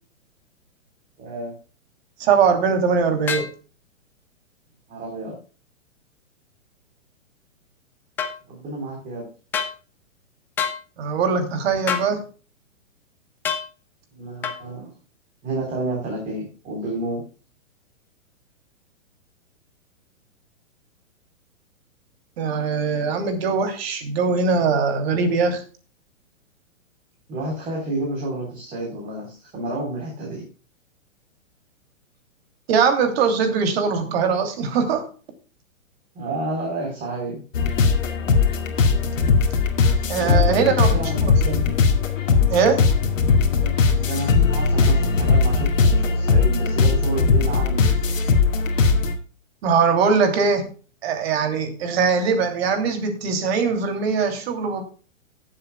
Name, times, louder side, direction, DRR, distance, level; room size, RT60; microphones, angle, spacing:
voice 1, 1.2-1.5 4.9-5.4 8.5-9.3 14.1-14.9 15.4-17.2 27.3-30.4 36.2-37.4 40.2-41.8 43.5-47.9, right 2 dB, 20° right, -2 dB, 3.7 m, -30 dB
voice 2, 2.2-3.5 11.0-12.2 22.4-25.6 32.7-35.1 40.1-41.5 42.5-42.8 49.6-50.7 51.0-54.8, right 5 dB, 50° right, 6 dB, 2.8 m, -21 dB
sound 1, 3.3-3.5 8.2-8.3 9.5-9.7 10.6-10.8 11.9-12.1 13.4-13.7 14.4-14.6, left 7 dB, 5° left, 0.4 m, -26 dB
sound 2, 37.5-49.1, left 4 dB, 70° left, 2.2 m, -19 dB
18.0 x 7.6 x 2.2 m, 0.37 s
hypercardioid pair, 125°, 40 cm